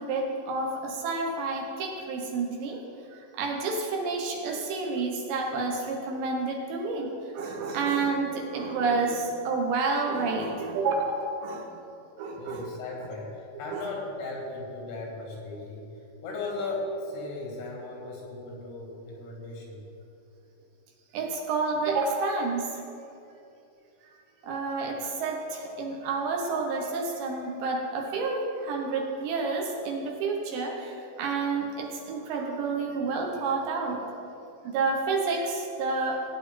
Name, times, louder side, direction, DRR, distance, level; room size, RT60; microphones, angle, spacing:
voice 1, 0.0-2.8 3.1-11.9 12.2-12.6 13.7-13.8 21.1-22.8 24.0-24.2 24.4-34.0 34.7-36.2, right 3 dB, 75° right, 1 dB, 2.9 m, -29 dB
voice 2, 12.4-15.9 16.2-19.9, left 2 dB, 80° left, -2 dB, 5.0 m, -36 dB
17.5 x 9.7 x 4.2 m, 2.7 s
omnidirectional pair, 5.7 m